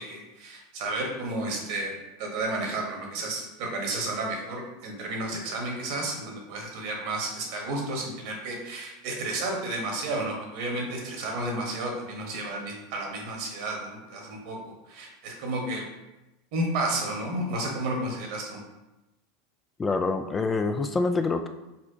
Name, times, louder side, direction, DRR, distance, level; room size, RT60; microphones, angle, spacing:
voice 1, 0.0-14.6 14.9-15.9 16.5-18.6, right 2 dB, 60° right, 0 dB, 1.2 m, -32 dB
voice 2, 19.8-21.5, left 3 dB, 20° left, 7 dB, 0.3 m, -26 dB
4.4 x 4.2 x 2.8 m, 1.0 s
hypercardioid pair, 85°, 0 cm